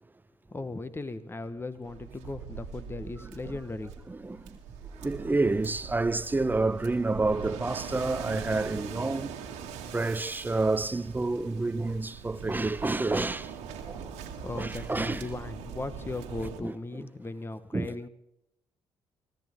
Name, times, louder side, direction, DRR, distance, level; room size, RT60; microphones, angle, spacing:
voice 1, 0.5-3.9 14.4-18.1, left 2 dB, 20° left, 1.0 m, -37 dB
Waves surf, 1.8-16.6, right 6 dB, 85° right, 2.1 m, -42 dB
voice 2, 3.2-3.6 4.1-4.6 4.9-9.4 9.9-13.6 13.9-14.0 14.5-15.3 16.6-17.1 17.7-18.0, right 3 dB, 15° right, 0.7 m, -29 dB
23.0 x 14.0 x 3.6 m
supercardioid pair, 65°, 11 cm